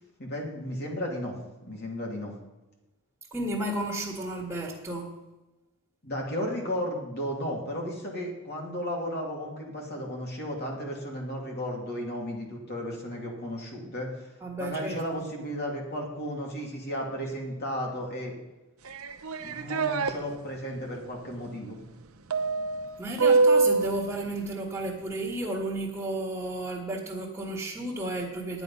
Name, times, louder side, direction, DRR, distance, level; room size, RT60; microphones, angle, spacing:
voice 1, 0.2-1.4 1.6-2.3 6.0-14.3 14.6-18.3 19.4-21.8, equal, 50° left, 0 dB, 2.7 m, -34 dB
voice 2, 3.3-5.1 14.4-15.0 23.0-28.6, right 2 dB, 10° right, -5 dB, 1.9 m, -32 dB
sound 1, 18.9-20.1 22.3-23.9, right 3 dB, 80° right, 0.8 m, -24 dB
10.5 x 9.0 x 5.6 m, 1.0 s
head